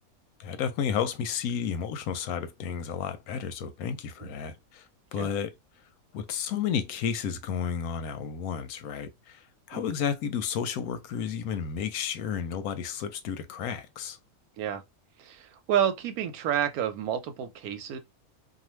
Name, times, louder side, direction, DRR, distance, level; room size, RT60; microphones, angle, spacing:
voice 1, 0.4-4.9 5.1-5.5 6.1-14.2, left 7 dB, 90° left, 1.1 m, -32 dB
voice 2, 15.2-18.0, right 9 dB, 90° right, 1.1 m, -30 dB
2.5 x 2.4 x 3.0 m
omnidirectional pair, 1.5 m